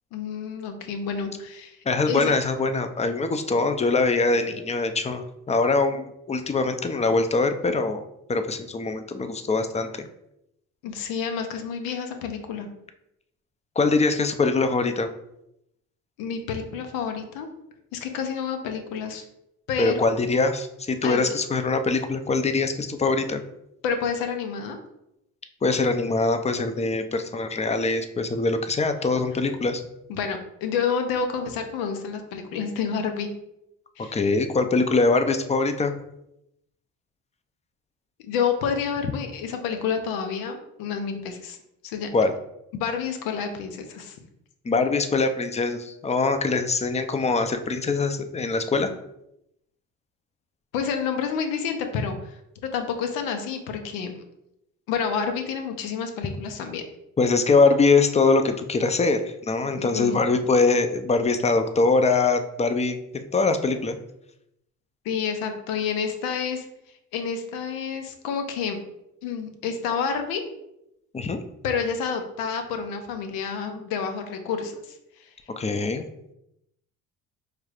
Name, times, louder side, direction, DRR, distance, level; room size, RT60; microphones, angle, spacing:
voice 1, 0.1-1.8 2.1-2.4 10.8-12.7 16.2-17.5 17.9-19.2 19.7-20.1 21.0-21.3 23.8-24.8 30.1-33.3 34.0-34.2 38.2-41.6 41.8-42.1 42.7-44.2 50.7-52.4 52.7-54.2 54.9-56.8 59.7-60.4 65.0-66.7 67.1-68.8 69.2-70.4 71.6-75.3, left 6 dB, 90° left, 6 dB, 0.7 m, -29 dB
voice 2, 1.9-8.0 8.3-10.1 13.8-15.1 19.8-23.4 25.6-29.8 34.1-35.9 42.1-42.3 44.6-48.9 57.2-64.0 71.1-71.4 75.6-76.1, left 3 dB, 20° left, 8 dB, 0.5 m, -23 dB
4.6 x 3.3 x 2.4 m, 0.82 s
supercardioid pair, 65°, 35 cm